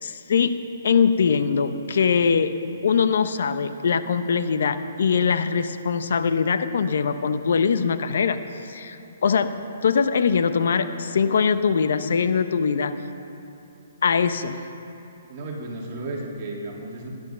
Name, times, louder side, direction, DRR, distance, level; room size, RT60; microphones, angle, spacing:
voice 1, 0.0-0.5 0.8-2.5 2.8-12.9 14.0-14.6, left 6 dB, 65° left, 11 dB, 0.7 m, -22 dB
voice 2, 15.3-17.1, right 2 dB, 30° right, -2 dB, 2.4 m, -34 dB
16.5 x 10.5 x 5.6 m, 2.9 s
hypercardioid pair, 165°, 0 cm